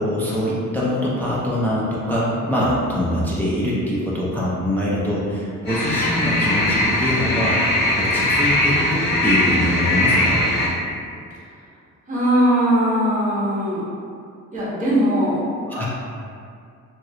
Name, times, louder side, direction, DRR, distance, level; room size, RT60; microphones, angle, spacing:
voice 1, 0.0-7.6 8.0-10.4 15.7-15.9, equal, 5° left, -7 dB, 0.3 m, -23 dB
sound 1, 5.6-10.7, left 1 dB, 35° left, 1.1 m, -20 dB
voice 2, 12.1-13.8 14.5-15.4, equal, 25° right, -8 dB, 0.9 m, -19 dB
2.8 x 2.4 x 3.0 m, 2.3 s
cardioid pair, 140°, 30 cm